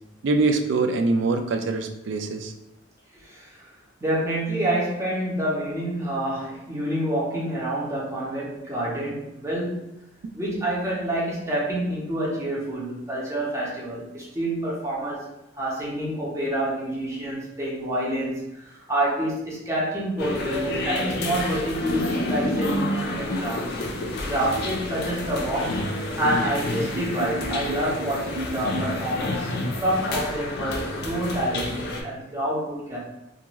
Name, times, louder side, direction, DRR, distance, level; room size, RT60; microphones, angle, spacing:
voice 1, 0.2-2.5 27.0-28.1 28.4-28.8, right 3 dB, 65° right, 6 dB, 0.3 m, -25 dB
voice 2, 3.1-3.7 4.0-9.9 10.3-15.3 15.6-23.9 24.2-29.5 29.8-33.0, right 1 dB, 15° right, -6 dB, 0.7 m, -28 dB
sound 1, 20.2-32.0, left 1 dB, 55° left, 0.4 m, -29 dB
2.5 x 2.4 x 3.0 m, 0.86 s
head